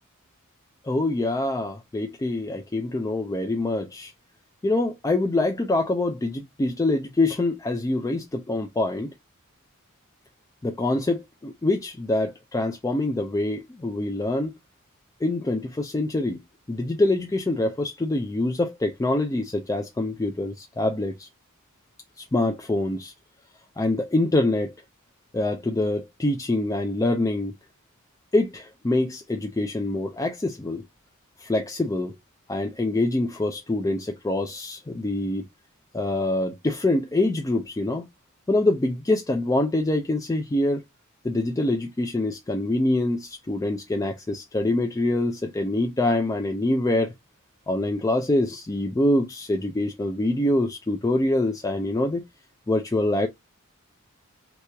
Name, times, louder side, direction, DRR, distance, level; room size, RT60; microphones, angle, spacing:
voice 1, 0.8-4.1 4.6-9.1 10.6-14.5 15.2-16.4 16.7-21.3 22.2-23.1 23.8-24.7 25.3-27.5 28.3-30.8 31.4-32.2 32.5-35.5 35.9-38.0 38.5-40.8 41.2-47.1 47.7-52.2 52.7-53.3, left 2 dB, 15° left, 0.4 m, -25 dB
3.0 x 2.8 x 3.2 m
head